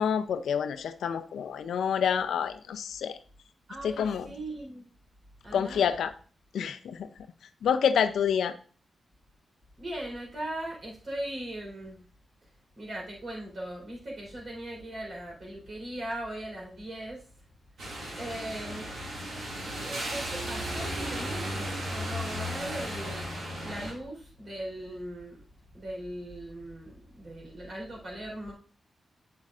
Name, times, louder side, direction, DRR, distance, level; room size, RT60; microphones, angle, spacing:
voice 1, 0.0-3.2 3.8-4.3 5.5-6.1 6.5-7.1 7.6-8.5, left 7 dB, 85° left, 10 dB, 0.4 m, -28 dB
voice 2, 3.7-4.8 5.4-5.9 9.8-12.0 12.8-17.3 18.2-18.9 19.6-23.3 23.6-25.4 25.7-28.5, right 1 dB, 55° right, -1 dB, 3.9 m, -39 dB
sound 1, 17.8-23.9, equal, 80° right, 2.1 m, -35 dB
7.8 x 7.4 x 2.4 m, 0.41 s
supercardioid pair, 50°, 0 cm